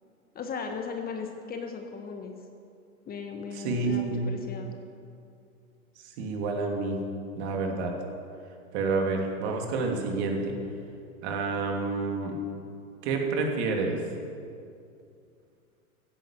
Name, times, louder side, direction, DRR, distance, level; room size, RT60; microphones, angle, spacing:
voice 1, 0.3-2.4 3.1-4.7, left 5 dB, 20° left, 4 dB, 1.3 m, -37 dB
voice 2, 3.5-4.2 6.2-7.0 7.4-7.9 8.7-10.6 11.2-12.4 13.0-14.0, right 3 dB, 45° right, 2 dB, 2.9 m, -29 dB
15.5 x 10.0 x 7.4 m, 2.4 s
hypercardioid pair, 110°, 44 cm